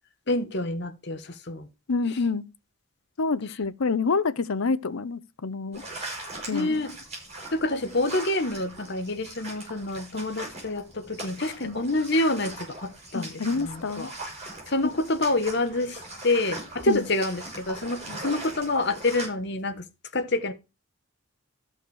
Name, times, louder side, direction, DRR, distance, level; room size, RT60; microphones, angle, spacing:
voice 1, 0.3-1.7 2.1-2.2 6.5-6.9 7.5-14.1 14.7-16.0 16.2-19.8 20.1-20.5, left 2 dB, 50° left, 1.1 m, -27 dB
voice 2, 1.9-2.4 3.2-5.8 6.5-6.8 11.6-11.8 13.1-14.1 16.9-17.0 18.1-18.2, left 4 dB, 80° left, 0.7 m, -27 dB
sound 1, 5.7-19.3, right 2 dB, 30° right, 6.2 m, -40 dB
13.5 x 5.6 x 4.7 m
head